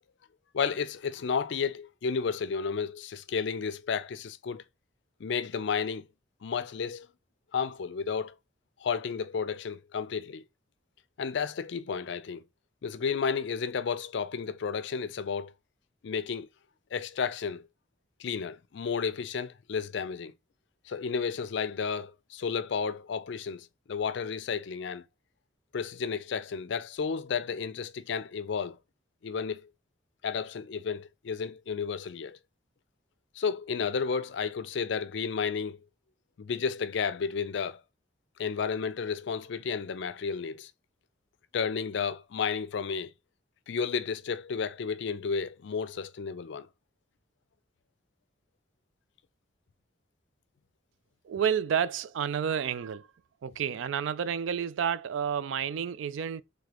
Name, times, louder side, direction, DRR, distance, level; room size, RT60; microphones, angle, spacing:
voice 1, 0.5-4.6 5.2-6.1 6.4-7.1 7.5-8.3 8.8-10.4 11.2-12.4 12.8-15.5 16.0-16.5 16.9-17.7 18.2-20.3 20.9-25.0 25.7-28.8 29.2-29.7 30.2-32.4 33.4-35.8 36.4-37.8 38.4-40.7 41.5-43.1 43.7-46.7, left 6 dB, 65° left, 0.4 m, -32 dB
voice 2, 51.2-53.1 53.4-56.4, right 8 dB, 75° right, 0.3 m, -30 dB
3.7 x 3.2 x 3.3 m
head